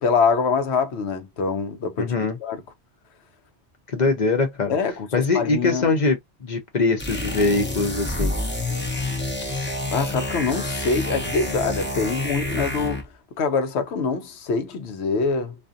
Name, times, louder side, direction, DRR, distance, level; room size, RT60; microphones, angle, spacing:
voice 1, 0.0-2.1 2.4-2.6 4.7-5.9 9.9-13.0 13.4-15.5, left 5 dB, 75° left, 0.9 m, -24 dB
voice 2, 2.0-2.4 3.9-4.8 5.1-8.3, left 3 dB, 45° left, 0.8 m, -22 dB
sound 1, 7.0-13.1, left 1 dB, 10° left, 0.6 m, -28 dB
2.5 x 2.4 x 2.5 m
omnidirectional pair, 1.1 m